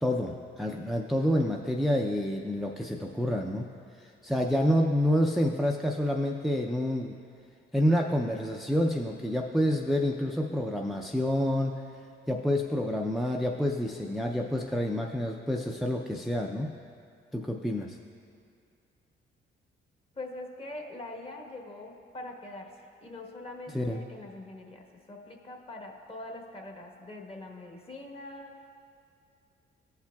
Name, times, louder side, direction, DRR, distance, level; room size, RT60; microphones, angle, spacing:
voice 1, 0.0-3.7 4.0-7.1 7.7-11.7 12.3-16.7 17.3-18.0 23.7-24.0, equal, ahead, 0 dB, 0.4 m, -28 dB
voice 2, 20.1-28.7, left 2 dB, 30° left, 1 dB, 1.1 m, -43 dB
15.5 x 5.7 x 2.3 m, 2.4 s
cardioid pair, 90°, 20 cm